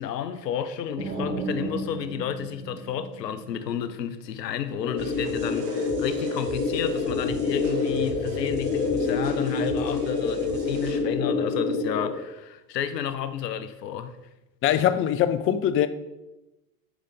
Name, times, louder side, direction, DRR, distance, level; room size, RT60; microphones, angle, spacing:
voice 1, 0.0-14.2, left 9 dB, 85° left, 0.6 m, -31 dB
sound 1, 1.0-3.8, right 2 dB, 85° right, 2.4 m, -34 dB
sound 2, 4.8-12.1, left 4 dB, 65° left, 1.2 m, -27 dB
sound 3, 5.0-11.0, right 3 dB, 60° right, 1.5 m, -41 dB
voice 2, 14.6-15.9, left 10 dB, 30° left, 0.4 m, -22 dB
7.7 x 4.9 x 4.1 m
hypercardioid pair, 70°, 48 cm